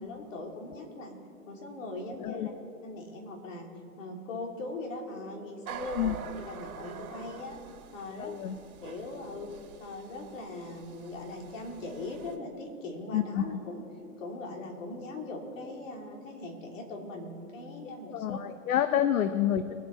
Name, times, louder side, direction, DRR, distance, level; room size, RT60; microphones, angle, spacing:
voice 1, 0.0-1.1 1.5-2.5 2.8-3.7 4.0-7.6 7.9-8.3 8.8-9.5 9.8-13.8 14.2-18.4 18.9-19.0, left 2 dB, 65° left, 1 dB, 3.2 m, -40 dB
voice 2, 2.2-2.5 5.9-6.1 8.2-8.6 13.1-13.4 18.1-19.7, left 10 dB, 80° left, 11 dB, 0.8 m, -28 dB
sound 1, 5.7-12.4, right 7 dB, 85° right, 1.7 m, -45 dB
23.0 x 8.4 x 4.4 m, 2.6 s
hypercardioid pair, 150°, 42 cm